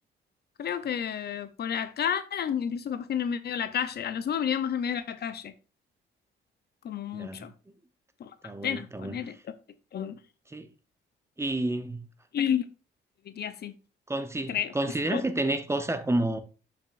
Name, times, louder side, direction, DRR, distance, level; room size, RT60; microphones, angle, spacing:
voice 1, 0.6-5.5 6.8-7.5 8.2-8.3 8.6-9.4 9.9-10.2 12.3-12.6 13.3-13.7 14.5-14.7 15.1-15.2, left 8 dB, 55° left, 0.6 m, -30 dB
voice 2, 7.1-7.5 8.4-9.2 10.5-10.7 11.4-12.0 14.1-16.4, right 1 dB, 15° right, 0.8 m, -30 dB
6.8 x 6.0 x 2.5 m
cardioid pair, 90°, 20 cm